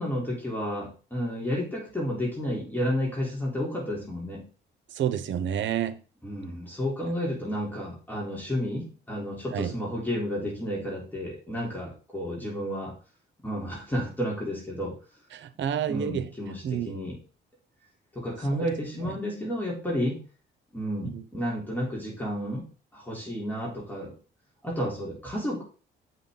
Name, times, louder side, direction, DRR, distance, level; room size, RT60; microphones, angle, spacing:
voice 1, 0.0-4.4 6.2-12.9 13.4-14.9 15.9-17.1 18.1-20.2 20.7-22.6 22.9-24.1 24.6-25.6, equal, 10° left, 3.7 m, -31 dB
voice 2, 4.9-6.0 9.5-9.8 15.3-16.3 16.6-17.0 18.5-18.7 18.9-19.2 21.0-21.2, right 9 dB, 70° right, 0.8 m, -30 dB
7.9 x 5.9 x 3.9 m
cardioid pair, 90°, 20 cm